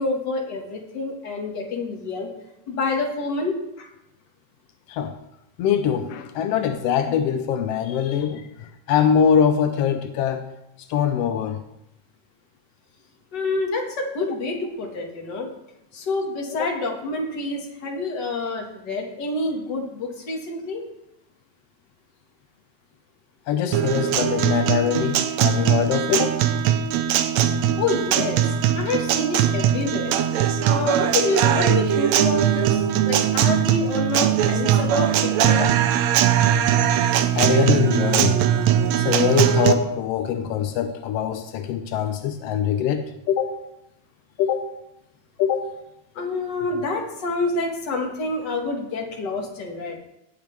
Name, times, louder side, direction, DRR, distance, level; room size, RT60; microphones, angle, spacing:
voice 1, 0.0-2.3 2.7-3.9 13.3-15.5 15.9-20.8 27.8-30.1 30.7-35.7 46.1-50.0, left 3 dB, 40° left, 1 dB, 2.0 m, -27 dB
voice 2, 5.6-10.4 10.9-11.6 14.2-14.3 16.6-16.7 23.5-26.4 37.3-38.5 39.0-43.6 44.4-44.7 45.4-45.7 46.6-46.9, left 8 dB, 85° left, 8 dB, 1.4 m, -23 dB
Guitar, 23.7-39.7, right 10 dB, 75° right, 1.8 m, -20 dB
17.5 x 7.8 x 3.4 m, 0.87 s
omnidirectional pair, 3.5 m